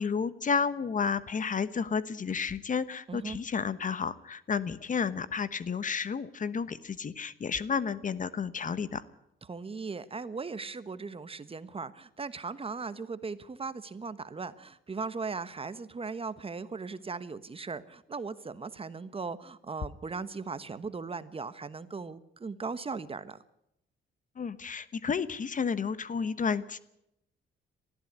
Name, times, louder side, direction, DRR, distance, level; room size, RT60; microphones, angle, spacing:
voice 1, 0.0-9.0 24.4-26.8, left 6 dB, 40° left, 15 dB, 1.1 m, -31 dB
voice 2, 3.1-3.4 9.5-23.4, right 4 dB, 30° right, 13 dB, 1.2 m, -38 dB
20.0 x 14.0 x 9.7 m, 0.81 s
cardioid pair, 90°, 20 cm